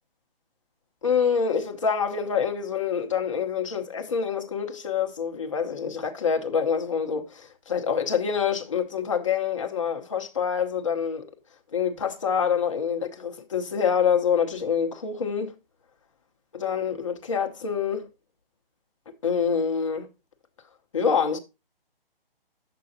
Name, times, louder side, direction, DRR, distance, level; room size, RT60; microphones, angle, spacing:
voice 1, 1.0-11.3 11.7-15.5 16.5-18.1 19.2-20.1 20.9-21.4, left 7 dB, 30° left, 1.0 m, -26 dB
10.5 x 7.8 x 2.7 m
hypercardioid pair, 175°, 29 cm